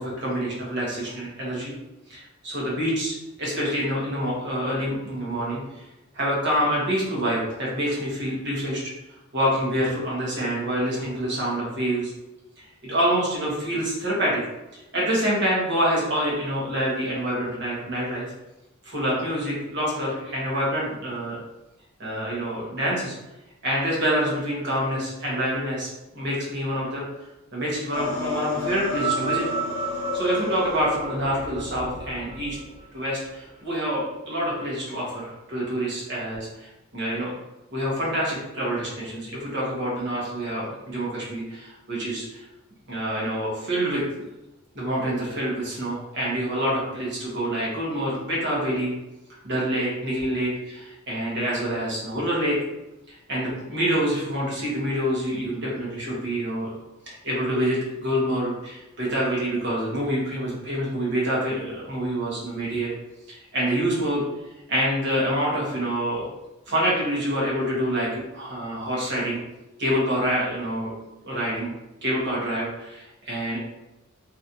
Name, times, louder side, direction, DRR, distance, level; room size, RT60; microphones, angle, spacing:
voice 1, 0.0-1.7 2.1-5.8 6.1-8.8 9.3-12.1 12.6-14.4 14.7-18.3 18.8-21.4 22.0-23.1 23.6-27.0 27.5-29.4 30.1-32.6 32.9-37.3 37.7-42.4 42.9-44.0 44.7-48.9 49.4-52.6 53.1-56.7 57.1-62.9 63.3-64.2 64.7-66.3 66.7-69.4 69.8-70.9 71.2-71.7 72.0-73.6, equal, 55° right, -5 dB, 1.2 m, -26 dB
sound 1, 27.9-32.8, left 3 dB, 85° left, 0.7 m, -32 dB
sound 2, 28.9-33.3 34.2-34.3, right 6 dB, 50° left, 0.7 m, -32 dB
3.0 x 2.7 x 2.6 m, 0.97 s
head